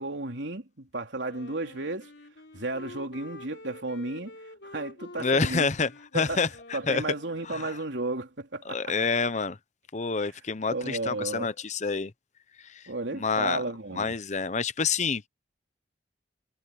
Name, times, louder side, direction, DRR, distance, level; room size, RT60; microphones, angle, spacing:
voice 1, 0.0-2.1 2.5-4.4 4.6-5.7 6.1-6.4 6.7-8.9 10.7-11.5 12.9-14.1, right 2 dB, 85° right, 3.5 m, -33 dB
Wind instrument woodwind instrument, 1.2-7.9, left 2 dB, 75° left, 3.9 m, -48 dB
voice 2, 5.2-7.0 7.5-7.7 8.7-9.6 9.9-12.1 12.7-12.8 13.1-13.6 13.9-15.2, left 4 dB, 40° left, 0.8 m, -28 dB
head